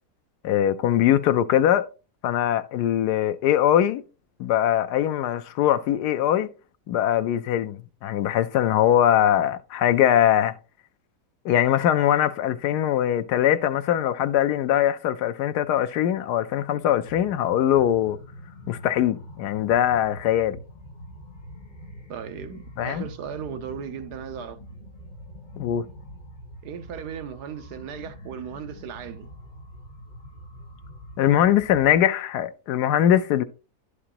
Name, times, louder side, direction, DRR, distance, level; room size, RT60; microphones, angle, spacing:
voice 1, 0.4-1.9 2.2-4.0 4.4-6.5 6.9-10.5 11.4-18.2 18.7-20.6 22.8-23.1 25.6-25.8 31.2-33.4, left 11 dB, 85° left, 1.2 m, -21 dB
sound 1, 17.0-32.0, equal, 30° left, 1.4 m, -44 dB
voice 2, 22.1-24.6 26.6-29.3, right 8 dB, 85° right, 1.3 m, -36 dB
11.0 x 4.9 x 2.9 m
omnidirectional pair, 1.7 m